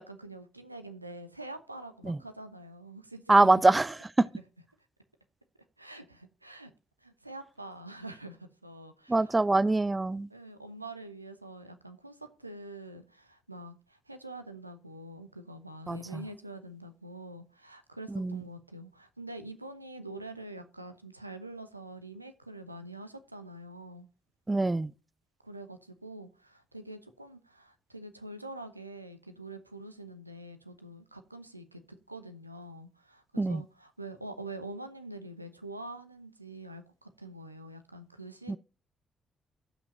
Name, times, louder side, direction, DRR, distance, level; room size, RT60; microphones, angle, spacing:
voice 1, 0.0-3.6 4.4-4.5 5.8-6.7 7.0-9.3 10.3-24.1 25.4-38.6, right 2 dB, 90° right, 0.6 m, -45 dB
voice 2, 3.3-4.3 9.1-10.3 15.9-16.2 18.2-18.4 24.5-24.9 33.4-33.6 38.5-38.6, right 2 dB, 20° right, 0.4 m, -24 dB
16.0 x 5.9 x 2.7 m
figure-of-eight pair, 40°, 0 cm